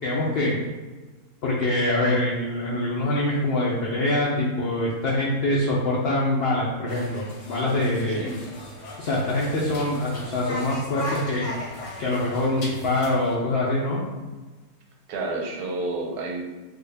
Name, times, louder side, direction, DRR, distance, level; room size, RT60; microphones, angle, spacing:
voice 1, 0.0-0.6 1.4-8.3 9.0-11.5 12.0-14.0, left 1 dB, 80° left, -4 dB, 0.5 m, -24 dB
sound 1, 6.9-13.3, left 1 dB, 65° left, 0.9 m, -38 dB
voice 2, 15.1-16.4, right 2 dB, 90° right, 0 dB, 1.2 m, -30 dB
3.3 x 2.2 x 3.2 m, 1.2 s
omnidirectional pair, 1.6 m